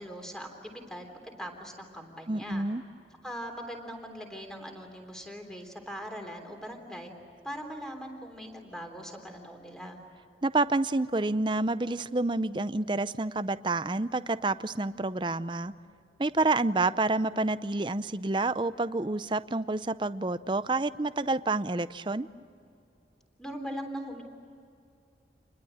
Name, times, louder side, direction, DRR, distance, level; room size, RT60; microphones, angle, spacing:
voice 1, 0.0-2.7 3.2-7.1 7.4-10.0 23.4-24.2, equal, 5° left, 3 dB, 3.4 m, -41 dB
voice 2, 2.3-2.8 10.4-15.7 16.2-22.3, right 2 dB, 25° right, 14 dB, 0.6 m, -28 dB
29.0 x 21.0 x 8.8 m, 2.5 s
head